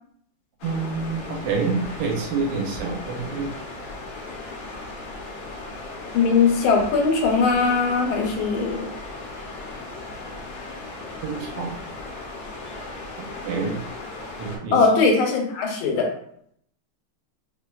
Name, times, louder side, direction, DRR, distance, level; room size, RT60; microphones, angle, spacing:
sound 1, 0.6-14.6, left 2 dB, 65° left, 1.0 m, -37 dB
voice 1, 0.6-3.5 11.2-11.7 13.4-13.8 14.4-14.8, right 4 dB, 70° right, 0 dB, 1.3 m, -27 dB
voice 2, 6.1-8.9 14.7-16.1, left 4 dB, 90° left, 1 dB, 1.4 m, -20 dB
3.5 x 2.6 x 2.2 m, 0.68 s
omnidirectional pair, 2.2 m